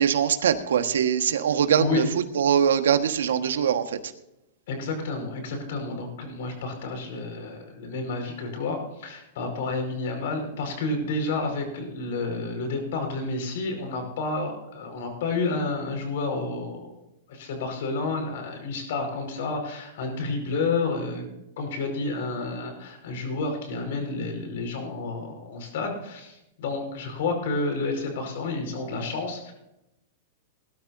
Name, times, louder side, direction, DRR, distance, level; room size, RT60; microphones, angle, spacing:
voice 1, 0.0-2.0 2.3-4.0, right 8 dB, 90° right, 7 dB, 1.5 m, -22 dB
voice 2, 1.8-2.1 4.7-16.9 17.3-21.3 21.6-29.5, left 3 dB, 65° left, 4 dB, 5.2 m, -30 dB
20.5 x 12.5 x 2.7 m, 0.89 s
hypercardioid pair, 140°, 0 cm